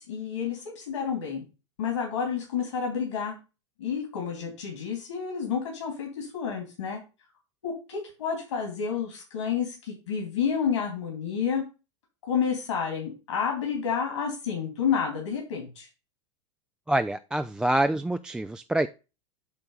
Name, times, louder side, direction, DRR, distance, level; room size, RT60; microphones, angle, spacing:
voice 1, 0.0-1.5 1.8-3.4 3.8-7.0 7.6-9.7 10.1-11.6 12.2-15.8, left 7 dB, 70° left, 1 dB, 2.7 m, -30 dB
voice 2, 16.9-18.9, right 1 dB, 5° right, 10 dB, 0.3 m, -26 dB
8.3 x 3.4 x 5.5 m, 0.30 s
hypercardioid pair, 90°, 15 cm